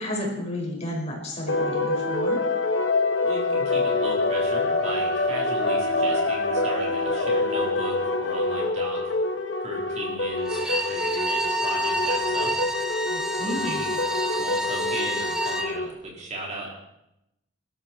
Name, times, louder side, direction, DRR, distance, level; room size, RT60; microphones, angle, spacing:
voice 1, 0.0-2.4 13.1-13.8, left 1 dB, 35° left, -1 dB, 5.1 m, -32 dB
sound 1, 1.5-15.9, left 2 dB, 70° left, 1.6 m, -26 dB
voice 2, 3.2-9.1 9.6-12.6 13.4-16.7, right 1 dB, 35° right, -2 dB, 4.2 m, -37 dB
Bowed string instrument, 10.4-15.7, equal, 5° right, 1.2 m, -28 dB
24.5 x 13.0 x 4.4 m, 0.87 s
head